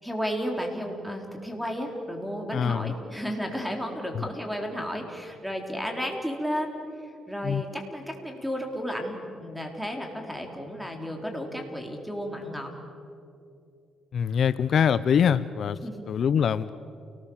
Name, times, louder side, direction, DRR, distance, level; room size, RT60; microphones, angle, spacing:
voice 1, 0.0-12.7 15.8-16.1, equal, ahead, 2 dB, 4.2 m, -33 dB
voice 2, 2.5-2.9 4.1-4.2 7.4-7.6 14.1-15.8 16.1-16.7, left 7 dB, 60° left, 15 dB, 0.6 m, -24 dB
29.5 x 19.5 x 7.3 m, 2.6 s
cardioid pair, 90°, 0 cm